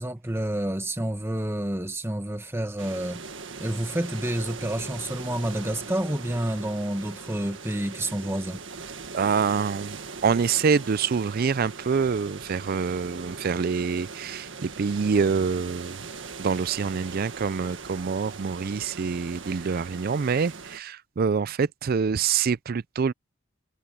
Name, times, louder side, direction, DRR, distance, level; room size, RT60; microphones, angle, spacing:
voice 1, 0.0-3.2 3.6-8.6, right 1 dB, 10° right, 1.5 m, -29 dB
sound 1, 2.8-20.8, right 4 dB, 65° right, 1.8 m, -40 dB
voice 2, 9.1-16.0 16.4-23.1, right 5 dB, 50° right, 0.4 m, -26 dB
head